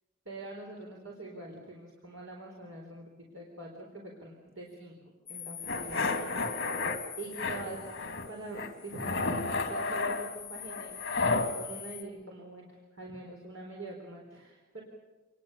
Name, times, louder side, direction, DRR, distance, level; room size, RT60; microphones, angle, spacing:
voice 1, 0.2-4.9 5.3-6.1 7.2-7.9 8.3-14.8, right 2 dB, 80° right, -1 dB, 4.3 m, -44 dB
sound 1, 5.3-12.0, left 9 dB, 20° left, 2.2 m, -45 dB
sound 2, 5.7-7.0 7.4-8.3 8.5-11.5, left 3 dB, 55° left, 2.6 m, -32 dB
27.5 x 21.0 x 6.9 m, 1.2 s
head